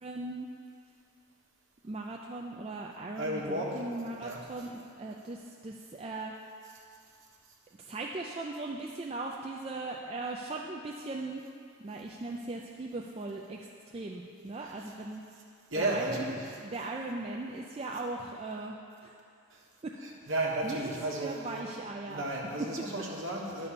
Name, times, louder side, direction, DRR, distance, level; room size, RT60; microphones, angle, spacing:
voice 1, 0.0-0.5 1.8-6.3 7.8-11.4 11.8-15.2 15.8-16.4 16.6-19.1 19.8-19.9 20.2-20.3 20.6-22.4 23.0-23.1 23.6-23.7, right 2 dB, 25° right, -1 dB, 0.3 m, -39 dB
voice 2, 3.2-3.7 4.2-4.4 15.7-16.3 19.5-19.6 20.3-21.4 22.1-23.7, right 2 dB, 55° right, -2 dB, 1.4 m, -33 dB
11.0 x 4.1 x 6.8 m, 2.4 s
head